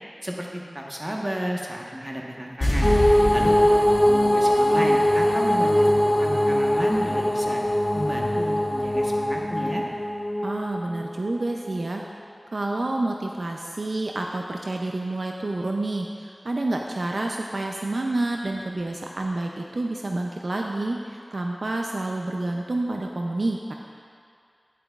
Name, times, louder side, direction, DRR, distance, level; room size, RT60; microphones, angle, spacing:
voice 1, 0.2-2.9 3.3-3.6 3.9-7.6 7.9-9.9, equal, 25° right, -1 dB, 1.1 m, -32 dB
sound 1, 2.6-5.8 6.1-6.2, left 1 dB, 85° left, 1.8 m, -28 dB
sound 2, 2.8-11.5, equal, 25° left, 0.5 m, -21 dB
voice 2, 10.4-12.0 12.5-23.7, right 2 dB, 70° right, 1 dB, 0.4 m, -28 dB
9.8 x 9.0 x 2.4 m, 2.3 s
wide cardioid pair, 45°, 0 cm